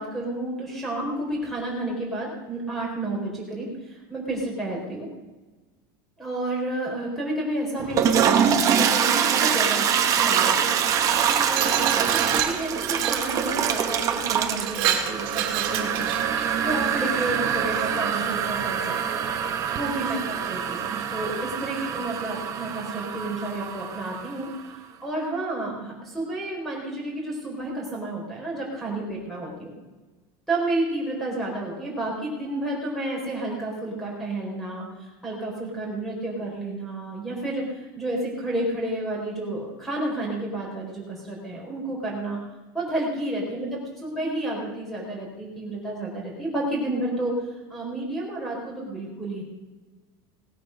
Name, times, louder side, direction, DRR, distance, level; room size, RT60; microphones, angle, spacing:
voice 1, 0.0-5.1 6.2-9.9 10.1-10.7 11.5-16.1 16.6-18.8 19.1-19.2 19.7-24.5 25.0-29.7 30.5-42.4 42.7-47.3 47.7-49.4, right 1 dB, ahead, -3 dB, 4.3 m, -31 dB
Toilet flush, 7.8-24.5, right 8 dB, 25° right, 1.2 m, -24 dB
Glass, 11.0-13.3 13.9-14.1 14.5-16.5, right 11 dB, 60° right, 2.1 m, -28 dB
18.5 x 8.4 x 6.5 m, 1.2 s
cardioid pair, 180°, 13 cm